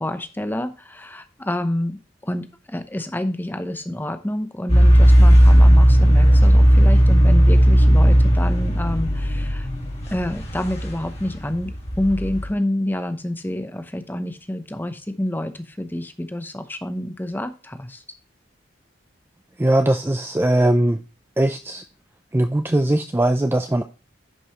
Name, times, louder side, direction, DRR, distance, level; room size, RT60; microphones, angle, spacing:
voice 1, 0.0-9.7 10.1-18.0, left 1 dB, 10° left, 0.8 m, -28 dB
sound 1, 4.7-12.5, equal, 35° left, 2.0 m, -15 dB
voice 2, 19.6-21.0 21.4-21.8 22.3-23.8, right 1 dB, 10° right, 0.4 m, -20 dB
11.0 x 5.3 x 3.0 m
head